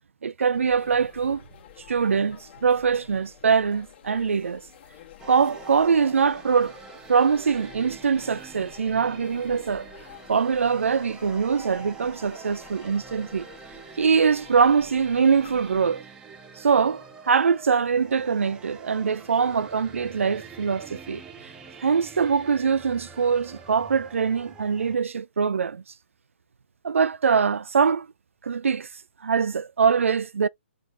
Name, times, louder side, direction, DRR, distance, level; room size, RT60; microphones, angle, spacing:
voice 1, 0.2-1.4 1.9-4.6 5.3-6.8 7.1-9.9 10.3-13.5 14.0-16.0 16.6-21.2 21.8-25.8 26.8-28.1 28.4-28.9 29.2-30.5, right 6 dB, 75° right, 0.4 m, -23 dB
sound 1, 0.5-15.9, left 10 dB, 50° left, 1.6 m, -49 dB
sound 2, 5.2-25.0, right 5 dB, 10° right, 0.6 m, -45 dB
4.8 x 2.5 x 3.2 m
hypercardioid pair, 140°, 7 cm